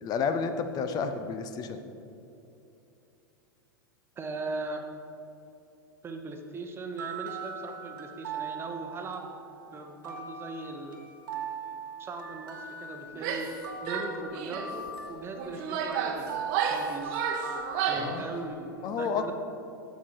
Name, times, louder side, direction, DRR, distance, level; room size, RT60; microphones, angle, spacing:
voice 1, 0.0-1.8 18.0-18.3 18.8-19.2, left 6 dB, 35° left, 9 dB, 0.7 m, -31 dB
voice 2, 4.2-4.9 6.0-9.4 9.7-11.0 12.0-13.5 13.8-16.3 16.7-17.2 17.9-19.3, right 3 dB, 20° right, 4 dB, 1.0 m, -39 dB
sound 1, 6.9-18.3, right 5 dB, 70° right, 1.0 m, -40 dB
Female speech woman speaking / Yell, 13.1-13.6 13.9-14.7 15.4-18.2, right 7 dB, 50° right, 0.9 m, -31 dB
8.4 x 7.0 x 4.7 m, 2.8 s
figure-of-eight pair, 90°, 12 cm